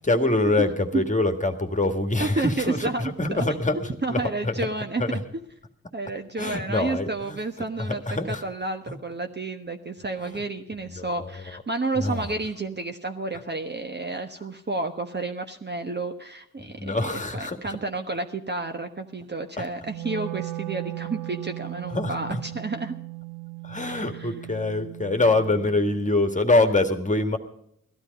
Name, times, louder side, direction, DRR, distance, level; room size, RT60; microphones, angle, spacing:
voice 1, 0.0-4.7 5.0-5.2 6.4-7.4 7.8-8.4 8.9-9.0 10.2-10.3 11.0-11.6 12.0-12.3 16.6-17.8 21.9-22.4 23.6-27.4, left 2 dB, 20° left, 7 dB, 1.9 m, -25 dB
voice 2, 2.2-3.4 4.0-5.2 5.9-8.0 8.3-22.9 23.9-24.3, right 3 dB, 25° right, 5 dB, 1.2 m, -31 dB
Wind instrument woodwind instrument, 19.8-26.0, right 21 dB, 65° right, 0.8 m, -37 dB
16.5 x 12.5 x 5.3 m, 0.74 s
hypercardioid pair, 40°, 41 cm